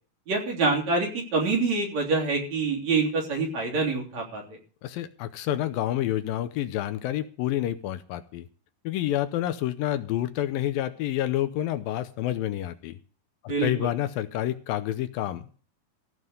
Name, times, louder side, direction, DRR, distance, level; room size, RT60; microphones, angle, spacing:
voice 1, 0.3-4.4 13.5-13.9, right 3 dB, 50° right, 0 dB, 4.5 m, -26 dB
voice 2, 4.8-8.5 8.8-13.0 13.4-15.5, left 13 dB, 80° left, 12 dB, 2.4 m, -28 dB
16.0 x 5.5 x 7.9 m, 0.41 s
omnidirectional pair, 4.3 m